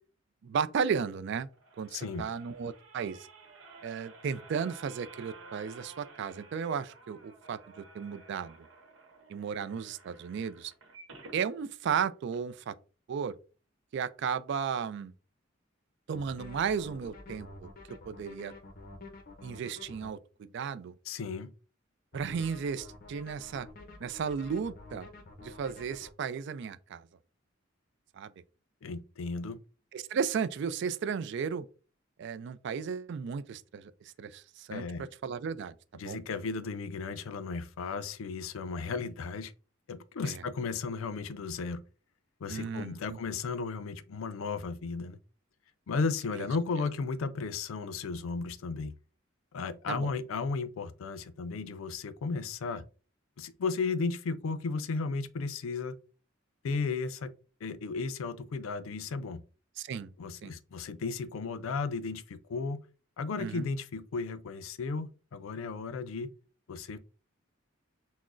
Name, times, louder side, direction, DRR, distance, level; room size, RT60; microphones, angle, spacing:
voice 1, 0.4-1.5 1.8-3.2 3.8-8.5 9.3-10.7 11.3-12.7 13.1-13.3 13.9-15.1 16.1-17.7 18.1-18.5 19.4-20.9 22.1-23.7 24.0-25.1 25.4-27.1 28.2-28.3 29.9-31.7 32.2-33.9 34.2-34.8 35.2-35.7 36.1-36.2 40.2-40.4 42.5-43.0 46.3-46.4 49.9-50.1 59.8-60.1 60.4-60.5 63.4-63.7, right 6 dB, 60° right, 0.3 m, -34 dB
sound 1, 1.5-11.4 11.9-12.0 12.3-12.4, right 3 dB, 80° right, 0.9 m, -53 dB
voice 2, 1.9-2.3 21.1-21.5 28.8-29.6 34.7-35.1 36.0-39.5 39.9-41.8 42.4-45.2 45.9-49.0 49.5-52.8 53.4-56.0 56.6-57.3 57.6-59.4 60.2-62.8 63.2-66.3 66.7-67.0, left 4 dB, 90° left, 0.4 m, -34 dB
sound 2, 16.1-20.1 22.1-26.1, left 2 dB, 45° left, 0.6 m, -49 dB
5.9 x 2.0 x 2.5 m
head